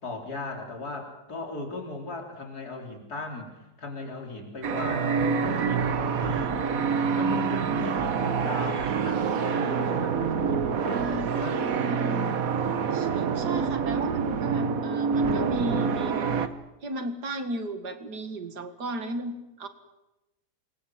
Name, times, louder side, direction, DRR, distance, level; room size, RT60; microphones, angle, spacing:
voice 1, 0.0-6.6 7.1-11.6, left 2 dB, 65° left, 2 dB, 4.2 m, -37 dB
sound 1, 4.6-16.5, right 6 dB, 60° right, 1.5 m, -26 dB
voice 2, 12.9-16.3 16.8-19.7, right 1 dB, 75° right, 8 dB, 2.5 m, -35 dB
27.5 x 21.5 x 7.6 m, 0.98 s
omnidirectional pair, 1.8 m